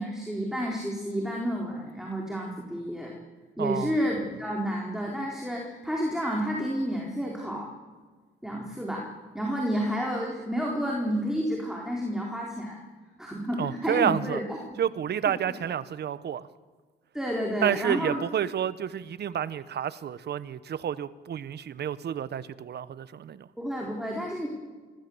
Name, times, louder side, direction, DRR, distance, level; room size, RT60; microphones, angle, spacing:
voice 1, 0.0-3.1 3.6-7.6 8.4-9.1 9.3-12.8 13.2-14.4 14.7-14.8 17.1-18.2 23.6-24.5, equal, ahead, -2 dB, 4.0 m, -30 dB
voice 2, 3.6-3.9 13.6-14.4 14.8-16.5 17.6-23.5, right 9 dB, 55° right, 16 dB, 1.0 m, -29 dB
26.0 x 16.5 x 7.9 m, 1.4 s
cardioid pair, 90°, 20 cm